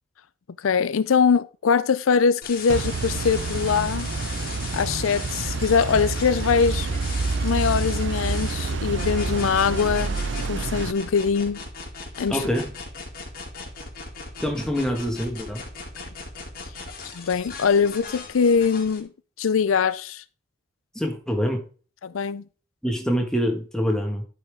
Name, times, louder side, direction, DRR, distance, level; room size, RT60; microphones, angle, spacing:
voice 1, 0.6-4.1 4.7-7.0 7.4-10.2 10.5-11.6 12.2-12.4 17.1-19.1 19.4-20.2 22.0-22.4, left 6 dB, 85° left, 0.5 m, -22 dB
sound 1, 2.4-19.0, left 4 dB, 45° left, 2.1 m, -38 dB
sound 2, 2.7-10.9, right 3 dB, 65° right, 0.5 m, -28 dB
voice 2, 12.3-12.7 14.4-15.6 20.9-21.6 22.8-24.2, equal, 5° left, 1.5 m, -25 dB
12.0 x 5.7 x 3.4 m
head